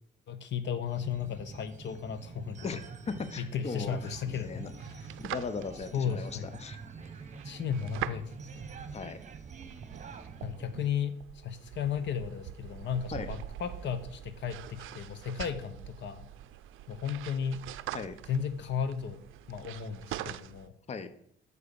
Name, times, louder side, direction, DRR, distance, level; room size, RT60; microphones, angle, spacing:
voice 1, 0.3-2.7 3.4-5.1 5.9-6.5 7.4-8.5 10.4-16.3 16.9-17.6 18.3-19.2 19.5-20.7, left 7 dB, 65° left, 12 dB, 0.7 m, -35 dB
sound 1, 0.9-10.9, right 5 dB, 35° right, 1.0 m, -46 dB
voice 2, 2.6-4.7 5.0-6.8 8.9-9.2 13.1-13.3 17.9-18.2 20.9-21.1, left 5 dB, 35° left, 11 dB, 0.7 m, -38 dB
sound 2, 4.3-20.7, right 13 dB, 85° right, 0.5 m, -44 dB
6.8 x 4.8 x 6.9 m, 0.67 s
cardioid pair, 90°, 20 cm